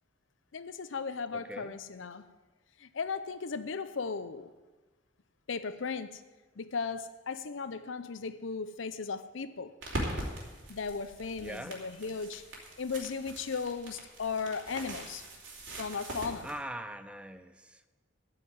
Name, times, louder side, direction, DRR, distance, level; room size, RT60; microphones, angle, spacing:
voice 1, 0.5-2.3 2.8-4.5 5.5-6.2 6.6-9.7 10.7-12.4 12.8-15.2 15.8-16.5, left 5 dB, 75° left, 0.6 m, -36 dB
voice 2, 1.3-1.8 11.4-11.9 16.4-17.9, right 1 dB, 5° right, 0.4 m, -42 dB
sound 1, 9.8-16.5, right 1 dB, 70° right, 3.1 m, -41 dB
13.5 x 5.8 x 9.1 m
head